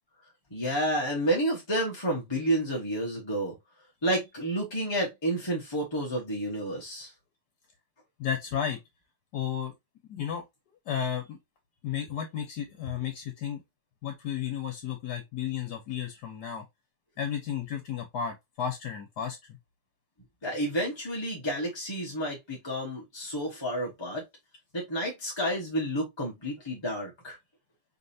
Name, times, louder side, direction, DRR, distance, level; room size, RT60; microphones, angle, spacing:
voice 1, 0.5-3.5 4.0-7.1 20.4-24.2 24.7-27.4, right 1 dB, 20° left, 1.0 m, -30 dB
voice 2, 8.2-8.8 9.3-9.7 10.1-10.4 10.9-11.4 11.8-13.6 14.0-16.6 17.2-19.4, left 8 dB, 70° left, 1.4 m, -33 dB
5.1 x 3.2 x 2.7 m
omnidirectional pair, 1.9 m